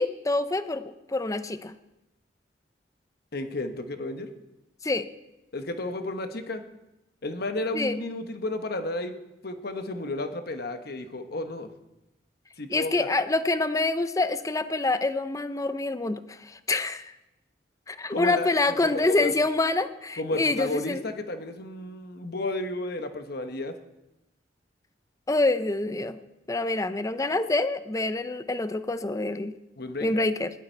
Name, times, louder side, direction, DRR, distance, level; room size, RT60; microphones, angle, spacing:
voice 1, 0.0-1.7 4.8-5.1 7.7-8.0 12.7-17.1 17.9-21.0 25.3-26.2 26.5-29.5 30.0-30.5, left 2 dB, 20° left, 12 dB, 0.6 m, -26 dB
voice 2, 3.3-4.3 5.5-6.6 7.2-9.1 9.4-11.7 12.6-13.1 18.1-18.5 18.8-19.3 20.2-23.8 29.8-30.1, left 2 dB, 60° left, 7 dB, 1.1 m, -32 dB
17.0 x 11.5 x 4.5 m, 0.94 s
head